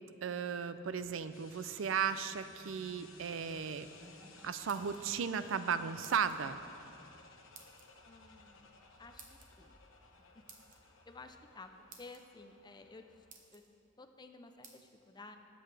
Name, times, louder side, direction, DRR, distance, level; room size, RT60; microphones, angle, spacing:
voice 1, 0.2-3.9 4.4-6.6, right 7 dB, 70° right, 12 dB, 0.4 m, -35 dB
sound 1, 1.3-13.3, left 4 dB, 70° left, 1.1 m, -59 dB
Marimba xylophone, 2.5-5.8, right 2 dB, 10° right, 0.8 m, -61 dB
sound 2, 4.5-5.3 6.0-6.4 7.5-7.9 9.2-9.5 10.5-10.8 11.5-11.6 11.9-12.2 12.8-12.9 13.3-13.7 14.6-14.8, right 5 dB, 40° right, 1.1 m, -55 dB
voice 2, 8.1-8.7 9.0-9.7 10.3-10.4 11.1-11.7 12.0-13.0 13.5-13.6 14.0-15.4, left 3 dB, 20° left, 6 dB, 0.5 m, -53 dB
20.0 x 7.8 x 3.4 m, 2.7 s
head